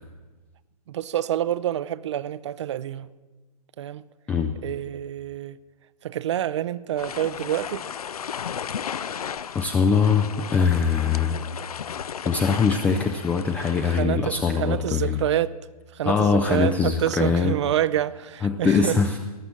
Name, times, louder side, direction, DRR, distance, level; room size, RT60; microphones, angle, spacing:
voice 1, 0.9-3.1 3.8-4.0 4.6-5.6 6.0-7.9 13.9-15.5 15.9-19.0, right 11 dB, 45° right, 0.5 m, -27 dB
sound 1, 7.0-14.0, left 8 dB, 70° left, 0.5 m, -34 dB
voice 2, 9.5-11.4 12.2-15.2 16.0-17.5 18.4-19.2, left 5 dB, 5° left, 0.4 m, -22 dB
19.0 x 6.9 x 7.5 m
figure-of-eight pair, 125°, 20 cm